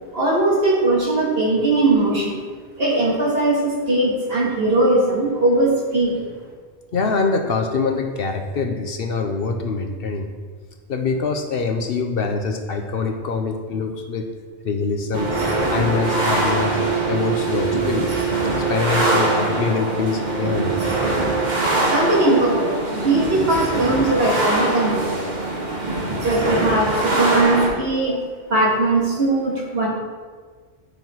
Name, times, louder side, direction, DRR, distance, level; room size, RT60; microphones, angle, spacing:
voice 1, 0.1-2.4 2.8-6.2 21.9-25.2 26.2-28.2 28.5-29.9, right 2 dB, 55° right, -5 dB, 2.4 m, -19 dB
voice 2, 6.9-10.3 10.9-14.2 14.6-15.3 15.7-16.7 17.1-18.1 18.6-20.8, left 4 dB, 60° left, 5 dB, 0.9 m, -24 dB
sound 1, 15.1-27.7, right 2 dB, 40° right, 1.7 m, -22 dB
10.0 x 5.7 x 4.6 m, 1.5 s
omnidirectional pair, 1.2 m